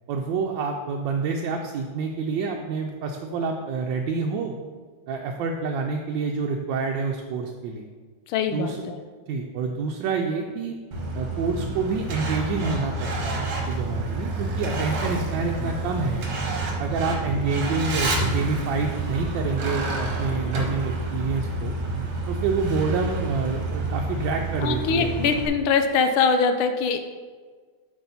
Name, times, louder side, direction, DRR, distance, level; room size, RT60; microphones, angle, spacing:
voice 1, 0.1-4.5 5.1-7.9 8.5-8.8 9.3-10.7 11.2-16.3 16.8-21.7 22.3-25.1, right 4 dB, 75° right, 2 dB, 1.2 m, -28 dB
voice 2, 8.3-9.0 24.6-27.0, left 5 dB, 90° left, 7 dB, 1.5 m, -22 dB
Truck, 10.9-25.5, right 2 dB, 55° right, 1.5 m, -28 dB
7.9 x 5.6 x 4.1 m, 1.5 s
omnidirectional pair, 2.2 m